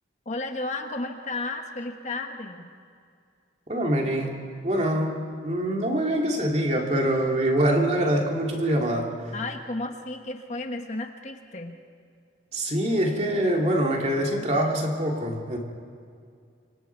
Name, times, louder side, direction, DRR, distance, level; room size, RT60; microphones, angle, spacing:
voice 1, 0.2-2.7 9.3-11.7, left 2 dB, 35° left, 4 dB, 1.3 m, -33 dB
voice 2, 3.7-9.3 12.5-15.6, right 1 dB, 35° right, 0 dB, 2.8 m, -25 dB
28.0 x 25.5 x 4.7 m, 2.3 s
head